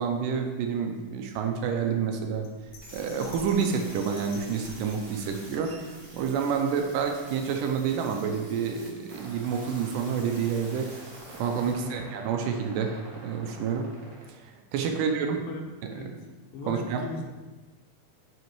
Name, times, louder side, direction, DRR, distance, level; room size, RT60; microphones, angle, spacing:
voice 1, 0.0-2.5 2.9-10.9 11.3-13.9 14.4-15.4 15.8-16.2 16.7-17.0, right 6 dB, 75° right, 4 dB, 2.2 m, -29 dB
Bell, 2.4-6.8 7.2-7.3, left 3 dB, 65° left, 2.2 m, -49 dB
sound 1, 2.8-11.7, right 1 dB, 35° right, 1.2 m, -48 dB
sound 2, 9.1-14.3, right 2 dB, 55° right, 1.9 m, -48 dB
voice 2, 11.7-12.0 14.9-15.0 15.3-16.1 16.5-17.2, left 3 dB, 90° left, 3 dB, 2.8 m, -38 dB
8.1 x 5.9 x 4.7 m, 1.3 s
omnidirectional pair, 4.0 m